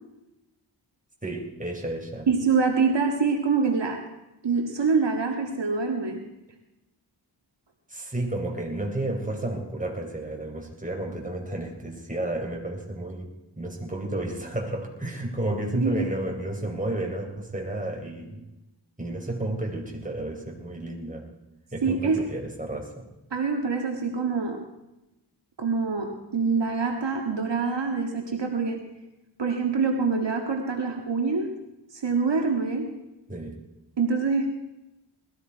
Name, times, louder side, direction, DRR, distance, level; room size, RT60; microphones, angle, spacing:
voice 1, 1.2-2.3 7.9-13.3 13.6-18.4 19.0-21.3 21.7-23.1 33.3-33.6, right 1 dB, 15° right, 0 dB, 3.9 m, -32 dB
voice 2, 2.3-4.0 4.4-6.2 15.8-16.0 21.8-22.2 23.3-24.6 25.6-28.8 29.4-31.6 31.9-33.0 34.0-34.5, right 4 dB, 65° right, 2 dB, 1.8 m, -25 dB
20.0 x 14.5 x 4.7 m, 0.96 s
cardioid pair, 40°, 45 cm